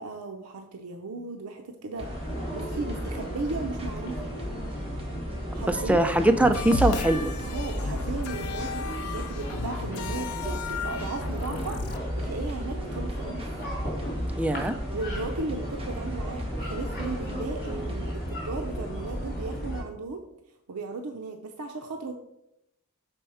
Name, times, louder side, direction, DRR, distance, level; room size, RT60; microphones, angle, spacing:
voice 1, 0.0-2.1 2.5-4.3 5.5-6.1 7.4-13.4 14.9-20.2 20.7-22.1, right 3 dB, 80° right, 5 dB, 0.6 m, -36 dB
sound 1, 2.0-19.8, equal, 45° left, 2.6 m, -34 dB
sound 2, 2.0-18.1, equal, 25° right, 0.9 m, -43 dB
voice 2, 5.7-7.3 14.4-14.8, right 1 dB, 5° right, 7 dB, 0.3 m, -22 dB
sound 3, 6.4-12.0, left 3 dB, 80° left, 0.5 m, -33 dB
6.2 x 4.5 x 4.8 m, 0.85 s
head